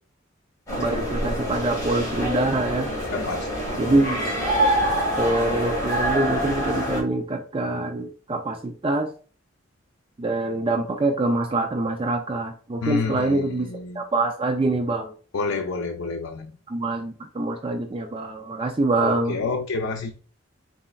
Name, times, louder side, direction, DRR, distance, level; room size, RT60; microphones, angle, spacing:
sound 1, 0.7-7.0, equal, 15° left, 1.8 m, -25 dB
voice 1, 0.8-2.9 3.8-4.2 5.2-9.1 10.2-15.1 16.7-19.4, right 2 dB, 25° right, 0.4 m, -25 dB
voice 2, 3.1-4.0 12.8-14.0 15.3-16.6 19.0-20.1, left 4 dB, 85° left, 0.5 m, -29 dB
4.1 x 4.1 x 2.3 m
head